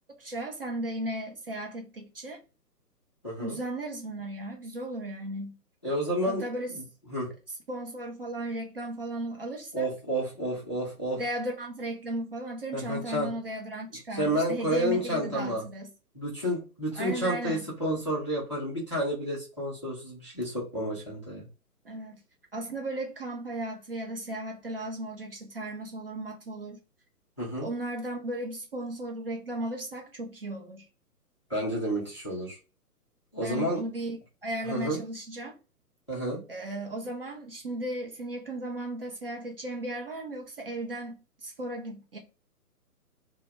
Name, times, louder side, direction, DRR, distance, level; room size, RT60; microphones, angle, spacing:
voice 1, 0.2-2.4 3.4-5.6 6.3-6.7 7.7-9.9 11.2-15.9 17.0-17.7 21.8-22.2 22.5-26.8 27.6-30.9 33.4-34.2 34.4-35.5 36.5-42.2, right 1 dB, 40° right, 0.4 m, -35 dB
voice 2, 3.2-3.6 5.8-6.4 6.7-6.8 7.1-7.3 9.7-11.2 12.7-13.3 14.1-15.6 16.1-21.5 27.4-27.7 31.5-32.6 33.3-33.8 34.6-35.0 36.1-36.4, equal, 20° left, 0.4 m, -30 dB
2.1 x 2.0 x 3.0 m
figure-of-eight pair, 130°, 47 cm